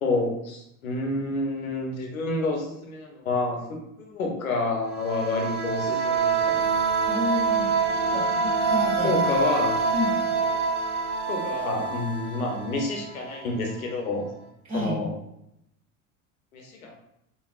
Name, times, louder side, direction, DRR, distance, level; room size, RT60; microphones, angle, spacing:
voice 1, 0.0-6.6 9.0-9.8 11.2-14.3 14.7-15.1 16.5-16.9, left 3 dB, 80° left, 1 dB, 0.9 m, -29 dB
sound 1, 4.8-13.4, right 5 dB, 50° right, 1.4 m, -26 dB
voice 2, 7.0-9.2 9.9-10.2 14.7-15.0, left 2 dB, 15° right, -10 dB, 1.1 m, -31 dB
5.3 x 2.4 x 2.4 m, 0.79 s
figure-of-eight pair, 70°, 41 cm